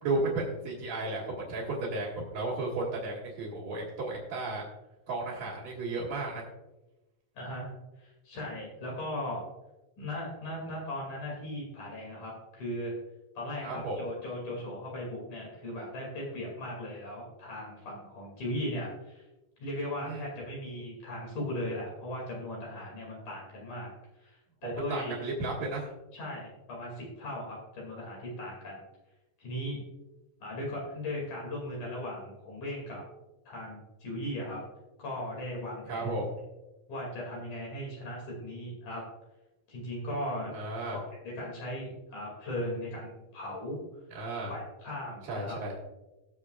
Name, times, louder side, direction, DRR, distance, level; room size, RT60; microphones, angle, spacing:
voice 1, 0.0-4.6 5.1-6.4 13.6-14.0 20.0-20.2 24.6-25.9 35.9-36.3 40.5-41.0 44.1-44.5 45.2-45.8, right 2 dB, 55° right, -8 dB, 3.1 m, -34 dB
voice 2, 7.4-7.7 8.0-9.5 10.0-13.0 13.4-19.2 19.6-23.9 24.2-25.2 26.1-28.8 29.4-29.8 30.4-33.0 33.5-34.6 35.0-36.2 36.9-39.1 39.7-40.5 40.9-43.8 44.5-45.6, left 1 dB, 60° left, -3 dB, 3.7 m, -38 dB
19.5 x 7.3 x 2.4 m, 1.0 s
omnidirectional pair, 4.1 m